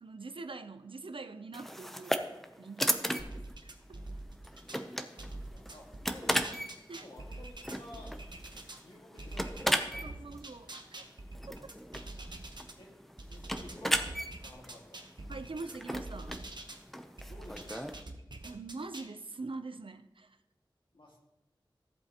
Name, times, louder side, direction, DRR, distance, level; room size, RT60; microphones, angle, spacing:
voice 1, 0.0-2.3 2.6-3.7 6.9-7.1 10.0-11.1 15.3-16.4 18.4-20.4, right 3 dB, 85° right, 10 dB, 0.6 m, -44 dB
sound 1, 1.5-18.0, equal, 5° left, 0.6 m, -37 dB
voice 2, 3.1-3.6 5.0-6.6 6.9-8.3 8.8-10.6 12.8-12.9 13.2-15.0 17.2-17.9 20.9-21.2, left 1 dB, 75° left, -1 dB, 1.9 m, -54 dB
sound 2, 3.2-4.8 5.2-8.8 9.2-12.7 13.2-16.8 17.2-19.1, right 2 dB, 60° right, 0.9 m, -45 dB
14.0 x 7.9 x 2.9 m, 0.98 s
wide cardioid pair, 60°, 9 cm